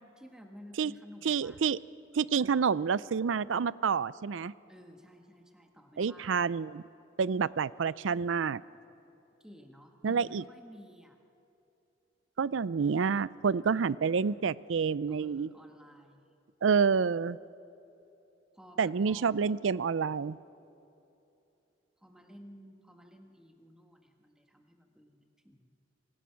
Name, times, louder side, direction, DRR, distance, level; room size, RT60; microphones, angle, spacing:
voice 1, 0.2-1.6 4.7-6.4 9.4-11.2 15.1-16.3 18.5-19.4 22.0-25.7, equal, 5° right, 3 dB, 1.5 m, -53 dB
voice 2, 1.3-1.8 2.1-4.5 6.0-6.8 7.2-8.6 10.0-10.4 12.4-15.5 16.6-17.4 18.8-20.4, right 6 dB, 90° right, 19 dB, 0.5 m, -28 dB
26.5 x 18.5 x 5.8 m, 2.8 s
head